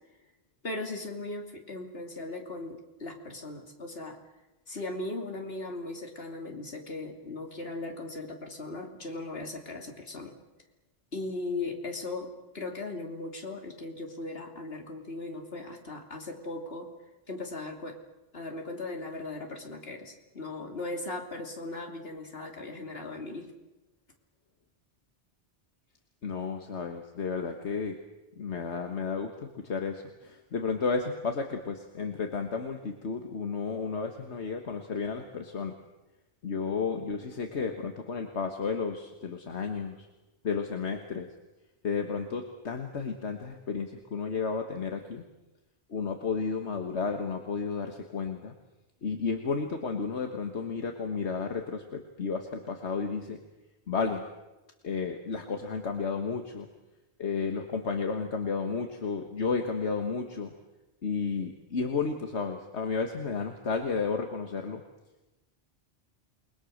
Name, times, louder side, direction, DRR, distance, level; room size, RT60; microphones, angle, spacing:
voice 1, 0.6-4.2 4.7-10.3 11.1-16.9 17.3-18.0 18.3-23.5, left 2 dB, 60° left, 2 dB, 3.2 m, -38 dB
voice 2, 26.2-28.0 28.4-35.7 36.4-40.1 40.4-41.3 41.8-45.2 45.9-48.5 49.0-53.4 53.9-54.3 54.8-56.7 57.2-60.5 61.0-64.8, left 5 dB, 75° left, 4 dB, 1.8 m, -32 dB
28.5 x 21.0 x 6.6 m, 1.0 s
omnidirectional pair, 1.1 m